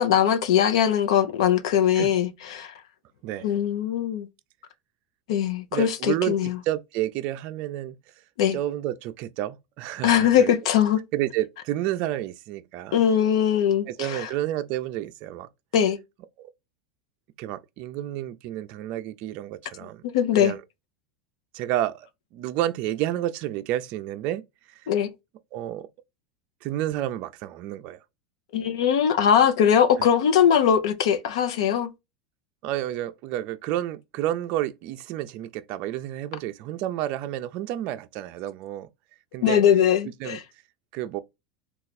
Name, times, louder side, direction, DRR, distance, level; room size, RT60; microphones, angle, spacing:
voice 1, 0.0-2.7 3.4-4.3 5.3-6.6 8.4-8.6 10.0-11.0 12.9-14.3 15.7-16.0 20.0-20.5 24.9-25.1 28.5-31.9 39.4-40.4, left 9 dB, 80° left, 0.7 m, -21 dB
voice 2, 5.7-8.0 8.5-10.5 11.1-13.0 13.9-15.5 16.4-16.5 17.4-20.0 20.4-20.6 21.5-24.4 24.7-24.9 25.5-25.9 26.6-28.0 30.0-30.1 32.6-38.9 39.3-39.6 40.2-40.4 40.9-41.2, right 13 dB, 50° right, 0.4 m, -30 dB
3.1 x 2.4 x 4.0 m
supercardioid pair, 125°, 3 cm